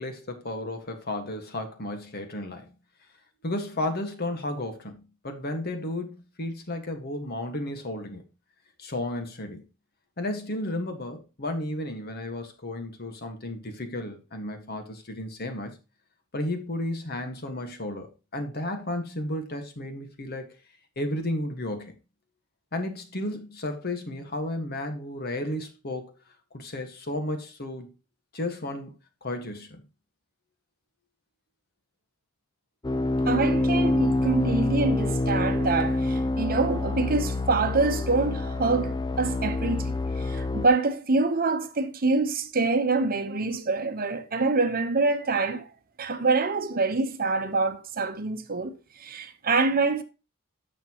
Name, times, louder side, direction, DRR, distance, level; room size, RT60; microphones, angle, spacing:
voice 1, 0.0-2.7 3.4-8.2 8.8-9.6 10.2-15.8 16.3-20.6 20.9-21.9 22.7-26.1 26.5-27.9 28.3-28.9 29.2-29.8, left 1 dB, 50° left, 1.6 m, -33 dB
sound 1, 32.8-40.7, left 2 dB, 20° left, 0.5 m, -26 dB
voice 2, 33.3-45.7 46.0-50.0, right 3 dB, 45° right, 0.9 m, -26 dB
10.5 x 6.8 x 3.0 m
head